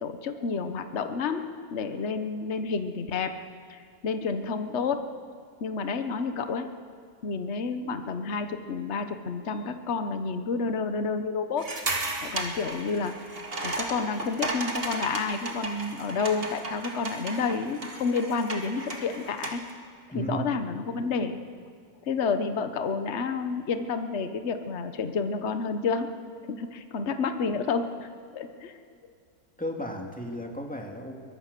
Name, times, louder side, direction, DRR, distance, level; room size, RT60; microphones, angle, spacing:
voice 1, 0.0-1.4 1.7-3.4 3.7-5.0 5.6-6.7 7.2-11.7 12.2-13.2 13.6-19.6 20.1-21.4 22.0-26.1 26.5-28.8, left 5 dB, 50° left, 8 dB, 1.3 m, -30 dB
sound 1, 11.6-19.7, right 2 dB, 40° right, 2.3 m, -35 dB
voice 2, 20.1-20.5 29.6-31.2, right 1 dB, 5° left, 1 dB, 2.2 m, -34 dB
22.5 x 20.5 x 6.8 m, 2.3 s
omnidirectional pair, 1.6 m